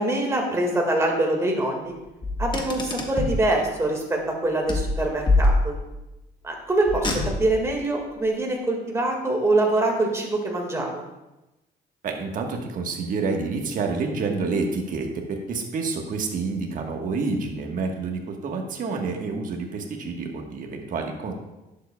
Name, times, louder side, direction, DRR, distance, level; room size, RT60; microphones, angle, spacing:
voice 1, 0.0-1.9 2.4-5.7 6.4-11.0, right 2 dB, 15° right, 0 dB, 1.8 m, -24 dB
Car, 2.2-3.4 4.7-6.0 6.9-7.7, left 2 dB, 25° left, 1.2 m, -24 dB
voice 2, 12.0-21.3, right 4 dB, 55° right, 2 dB, 1.3 m, -28 dB
11.0 x 7.4 x 2.3 m, 0.99 s
cardioid pair, 110°, 17 cm